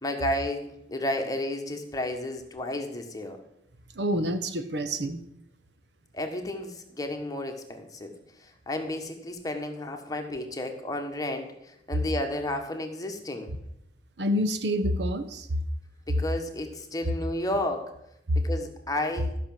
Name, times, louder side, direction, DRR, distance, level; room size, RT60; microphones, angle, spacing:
voice 1, 0.0-3.4 6.1-8.1 8.4-13.5 16.1-17.9 18.3-19.3, left 1 dB, 20° left, 4 dB, 1.5 m, -32 dB
voice 2, 3.9-5.2 14.2-15.5 18.3-18.4, equal, 70° right, 10 dB, 1.0 m, -27 dB
13.0 x 6.0 x 7.5 m, 0.80 s
head